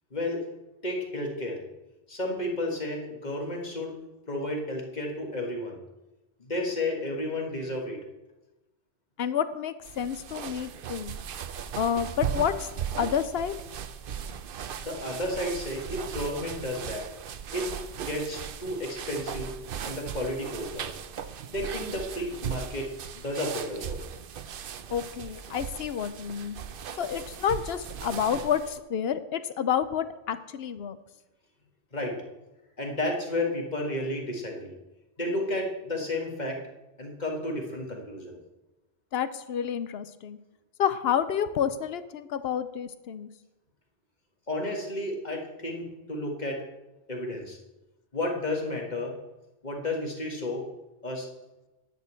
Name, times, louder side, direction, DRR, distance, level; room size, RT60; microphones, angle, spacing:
voice 1, 0.1-0.5 0.8-1.6 2.1-4.0 4.3-5.8 6.4-8.0 14.8-17.1 17.5-17.8 18.1-19.6 19.8-20.9 21.5-24.0 31.9-32.2 32.8-34.7 35.2-36.7 37.0-38.4 44.5-46.6 47.1-47.6 48.1-49.2 49.6-50.7 51.0-51.3, left 1 dB, 45° left, 1 dB, 1.9 m, -32 dB
voice 2, 9.2-11.1 11.8-12.7 13.0-13.6 24.9-26.6 27.0-31.0 39.1-40.4 40.8-43.3, left 8 dB, 75° left, 13 dB, 0.9 m, -29 dB
sound 1, 9.8-28.8, right 8 dB, 65° right, 0.8 m, -38 dB
10.5 x 5.3 x 8.2 m, 1.0 s
omnidirectional pair, 1.1 m